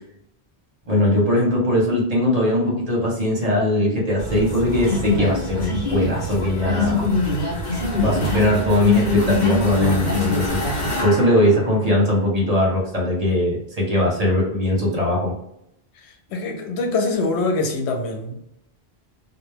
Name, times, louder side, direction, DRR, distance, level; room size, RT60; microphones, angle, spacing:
voice 1, 0.9-7.1 8.0-10.6 11.0-15.3, left 1 dB, 40° right, 0.7 m, -20 dB
sound 1, 4.2-11.1, left 2 dB, 60° left, 0.9 m, -23 dB
sound 2, 7.0-12.2, left 2 dB, 25° left, 0.9 m, -33 dB
voice 2, 16.3-18.4, left 3 dB, 85° left, 0.9 m, -24 dB
2.2 x 2.0 x 3.2 m
omnidirectional pair, 1.1 m